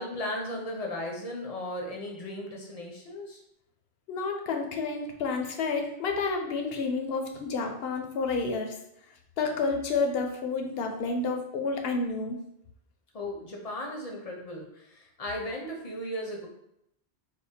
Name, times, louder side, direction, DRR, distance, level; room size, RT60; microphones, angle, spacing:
voice 1, 0.0-3.4 13.1-16.5, left 1 dB, 40° left, 0 dB, 0.7 m, -36 dB
voice 2, 4.1-8.8 9.4-12.4, left 4 dB, 70° left, 4 dB, 0.8 m, -30 dB
3.4 x 2.0 x 4.1 m, 0.77 s
omnidirectional pair, 1.1 m